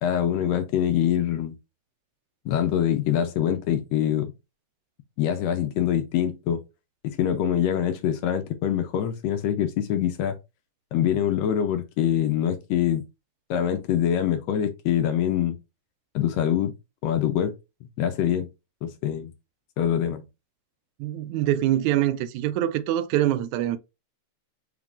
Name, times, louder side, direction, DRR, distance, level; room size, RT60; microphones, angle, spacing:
voice 1, 0.0-1.5 2.4-4.3 5.2-6.6 7.0-10.4 10.9-13.0 13.5-15.6 16.1-16.7 17.0-17.5 18.0-18.5 18.8-19.3 19.8-20.2, left 10 dB, 75° left, 1.7 m, -24 dB
voice 2, 21.0-23.8, right 13 dB, 85° right, 1.9 m, -24 dB
4.8 x 3.6 x 2.4 m
omnidirectional pair, 3.4 m